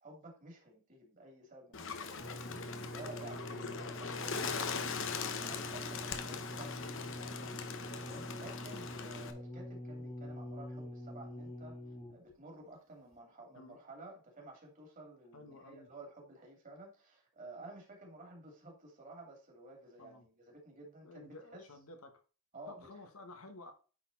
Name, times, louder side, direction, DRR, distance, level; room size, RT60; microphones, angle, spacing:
voice 1, 0.0-2.6 2.9-11.7 12.1-21.7 22.5-23.0, right 2 dB, 35° right, 2.7 m, -53 dB
Bird, 1.7-9.3, left 5 dB, 60° left, 0.9 m, -41 dB
sound 1, 2.2-12.3 13.1-13.2, equal, 30° left, 1.7 m, -46 dB
voice 2, 3.3-3.6 13.5-13.8 15.3-15.9 20.0-20.2 21.0-22.1 22.7-23.7, left 2 dB, 80° left, 1.4 m, -53 dB
9.4 x 4.2 x 4.0 m
head